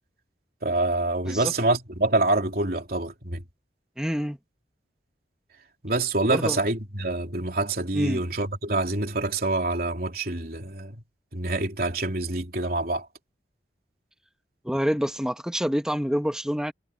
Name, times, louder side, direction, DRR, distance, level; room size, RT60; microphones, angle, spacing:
voice 1, 0.6-3.4 5.8-11.0 11.3-13.1, right 2 dB, 55° right, 3.4 m, -26 dB
voice 2, 4.0-4.4 6.3-6.6 7.9-8.2 14.6-16.7, equal, 5° right, 1.5 m, -27 dB
head